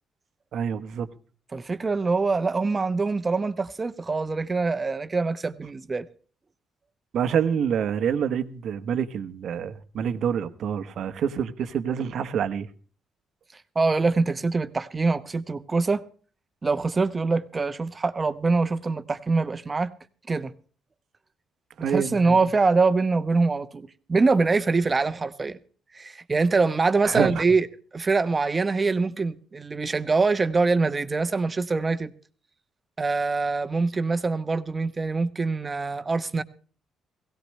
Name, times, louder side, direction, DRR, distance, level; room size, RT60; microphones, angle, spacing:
voice 1, 0.5-1.1 7.1-12.7 21.8-22.4 27.0-27.4, right 7 dB, 70° right, 1.1 m, -27 dB
voice 2, 1.5-6.0 13.5-16.0 16.6-19.9 20.3-20.5 21.9-25.6 25.9-27.7 27.9-32.1 33.0-36.4, right 3 dB, 30° right, 1.0 m, -24 dB
17.0 x 17.0 x 3.2 m
cardioid pair, 90°, 0 cm